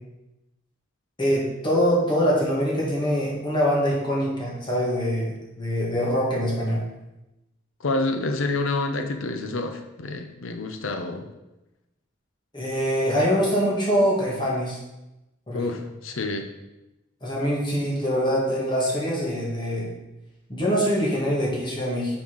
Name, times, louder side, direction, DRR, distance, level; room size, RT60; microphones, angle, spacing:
voice 1, 1.2-6.8 12.5-14.8 15.5-15.6 17.2-19.9 20.5-22.2, equal, 25° left, -5 dB, 2.2 m, -24 dB
voice 2, 7.8-11.3 15.5-16.5, left 2 dB, 75° left, 6 dB, 0.7 m, -28 dB
6.1 x 4.3 x 5.7 m, 0.97 s
head